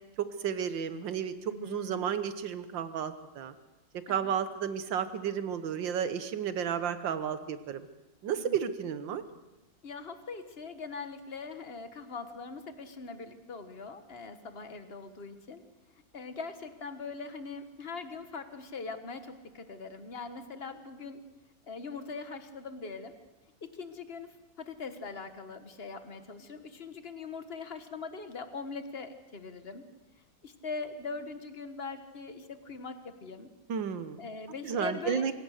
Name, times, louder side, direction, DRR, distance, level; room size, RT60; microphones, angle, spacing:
voice 1, 0.2-3.5 4.1-7.8 8.2-9.2 33.7-34.2 34.6-35.3, right 8 dB, 80° right, 12 dB, 1.8 m, -32 dB
voice 2, 1.5-2.1 4.1-4.4 8.3-8.6 9.8-15.6 16.1-21.2 21.7-23.2 23.6-29.8 30.4-33.5 34.2-35.3, left 4 dB, 35° left, 9 dB, 1.5 m, -41 dB
26.0 x 17.0 x 6.6 m, 1.0 s
omnidirectional pair, 2.0 m